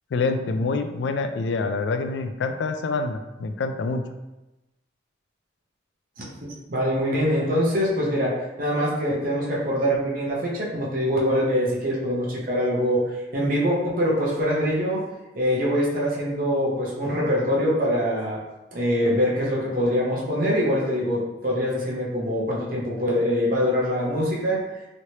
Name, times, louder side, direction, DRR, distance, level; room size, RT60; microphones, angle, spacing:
voice 1, 0.1-4.0, left 3 dB, 70° left, 8 dB, 0.3 m, -26 dB
voice 2, 6.7-15.0 15.3-18.4 18.7-24.6, equal, 50° right, -5 dB, 0.8 m, -24 dB
3.1 x 2.9 x 2.8 m, 1.0 s
head